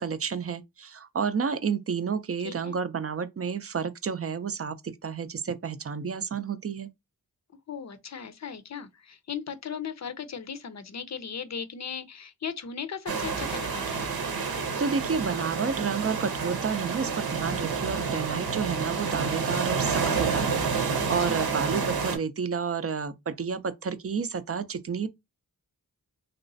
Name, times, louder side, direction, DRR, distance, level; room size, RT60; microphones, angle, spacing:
voice 1, 0.0-6.9 14.8-25.1, right 6 dB, 40° right, 0.5 m, -30 dB
voice 2, 2.4-2.8 7.7-14.1 21.0-21.4, left 7 dB, 50° left, 0.6 m, -37 dB
sound 1, 13.1-22.2, right 5 dB, 85° right, 0.9 m, -29 dB
3.1 x 3.0 x 2.6 m
wide cardioid pair, 65°, 36 cm